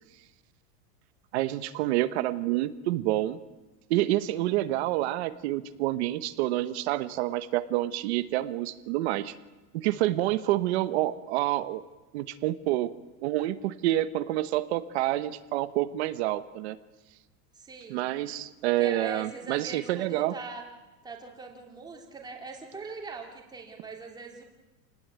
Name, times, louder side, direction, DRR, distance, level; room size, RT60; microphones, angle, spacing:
voice 1, 1.3-3.4 3.9-9.3 9.7-11.8 12.1-12.9 13.2-16.8 17.9-20.3, right 15 dB, 45° right, 12 dB, 1.1 m, -28 dB
voice 2, 17.5-18.1 18.8-20.6 21.0-24.4, right 3 dB, 10° right, 1 dB, 3.0 m, -41 dB
28.5 x 19.5 x 9.3 m, 1.2 s
supercardioid pair, 180°, 46 cm